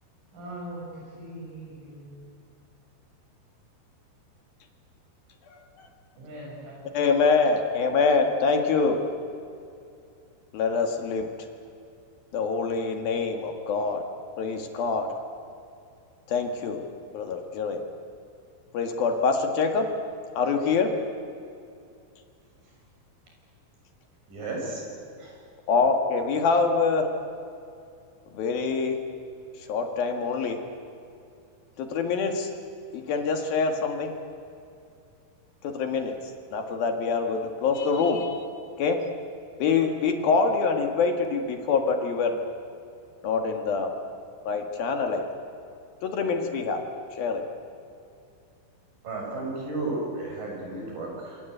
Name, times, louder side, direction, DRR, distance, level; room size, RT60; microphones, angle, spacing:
voice 1, 0.3-2.2 6.2-7.1, right 1 dB, 90° right, -5 dB, 10.0 m, -41 dB
voice 2, 5.5-5.9 6.9-9.0 10.5-11.3 12.3-14.0 14.4-15.1 16.3-16.8 17.1-17.8 18.7-19.9 20.3-20.9 25.7-27.1 28.3-29.0 29.7-30.6 31.8-32.5 32.9-34.1 35.6-36.2 36.5-38.5 38.8-39.0 39.6-42.4 43.2-43.9 44.5-45.2 46.0-46.8 47.1-47.4, left 4 dB, 55° left, 4 dB, 3.2 m, -25 dB
voice 3, 24.3-24.8 25.2-25.4 49.0-51.4, right 2 dB, 45° right, -1 dB, 8.1 m, -33 dB
27.0 x 25.5 x 8.1 m, 2.5 s
omnidirectional pair, 5.6 m